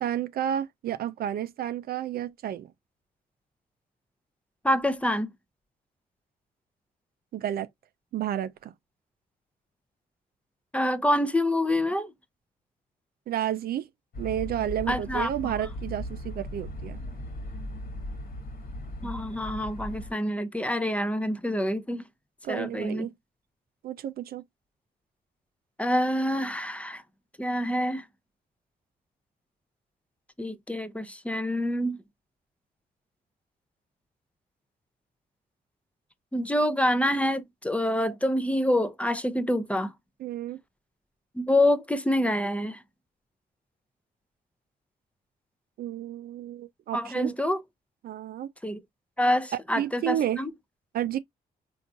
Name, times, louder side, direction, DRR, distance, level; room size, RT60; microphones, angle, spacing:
voice 1, 0.0-2.7 7.3-7.7 8.1-8.7 13.3-13.9 14.2-17.0 22.4-23.1 23.8-24.4 40.2-40.6 45.8-47.3 48.0-48.5 49.8-50.4 50.9-51.2, right 11 dB, 70° right, 0.4 m, -31 dB
voice 2, 4.6-5.3 10.7-12.1 14.9-15.5 19.0-22.0 22.5-23.1 25.8-27.0 27.4-28.1 30.4-32.0 36.3-39.9 41.3-42.8 46.9-47.6 48.6-48.8 49.2-50.5, left 1 dB, 10° left, 0.6 m, -26 dB
sound 1, 14.1-20.1, left 1 dB, 60° left, 1.5 m, -38 dB
3.7 x 2.6 x 2.3 m
cardioid pair, 70°, 17 cm